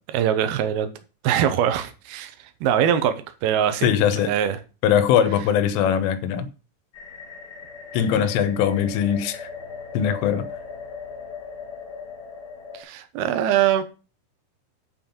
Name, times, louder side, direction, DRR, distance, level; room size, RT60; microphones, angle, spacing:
voice 1, 0.1-0.9 1.2-3.9 4.2-4.6 12.7-13.8, right 9 dB, 75° right, 2.3 m, -22 dB
voice 2, 3.8-4.3 4.8-6.5 7.9-9.5 10.0-10.5, left 9 dB, 80° left, 3.5 m, -21 dB
sound 1, 6.9-12.8, left 5 dB, 50° left, 1.7 m, -38 dB
8.4 x 5.6 x 7.2 m
omnidirectional pair, 5.7 m